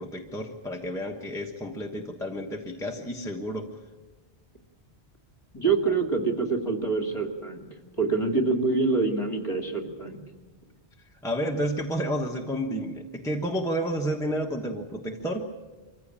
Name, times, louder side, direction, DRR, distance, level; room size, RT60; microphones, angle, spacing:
voice 1, 0.0-3.7 11.2-15.5, equal, 5° left, 0 dB, 1.2 m, -31 dB
voice 2, 5.5-7.7 8.0-10.2, right 4 dB, 30° left, 4 dB, 2.3 m, -26 dB
24.0 x 15.5 x 8.7 m, 1.3 s
omnidirectional pair, 1.1 m